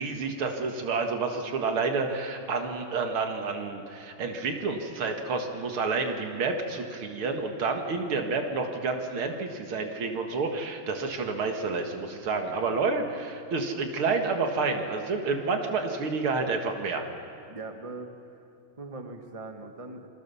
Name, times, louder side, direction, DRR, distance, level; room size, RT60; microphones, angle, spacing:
voice 1, 0.0-17.0, right 4 dB, 80° right, 4 dB, 2.6 m, -29 dB
voice 2, 17.5-18.4 18.8-20.1, right 3 dB, 20° right, 5 dB, 1.4 m, -41 dB
27.5 x 22.0 x 7.0 m, 2.6 s
omnidirectional pair, 2.3 m